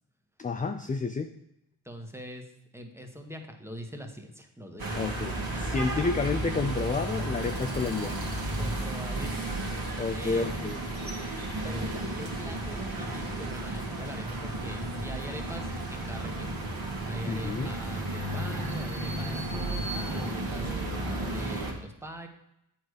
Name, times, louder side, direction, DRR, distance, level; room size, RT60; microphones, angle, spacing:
voice 1, 0.4-1.3 4.9-8.2 10.0-10.8 17.3-17.7, left 4 dB, 20° left, 6 dB, 0.4 m, -30 dB
voice 2, 1.8-5.8 8.6-9.6 10.1-10.8 11.6-16.6 17.0-22.3, equal, 5° right, 4 dB, 1.3 m, -43 dB
sound 1, 4.8-21.7, right 1 dB, 45° right, 1.8 m, -33 dB
8.0 x 4.4 x 4.8 m, 0.81 s
supercardioid pair, 45°, 48 cm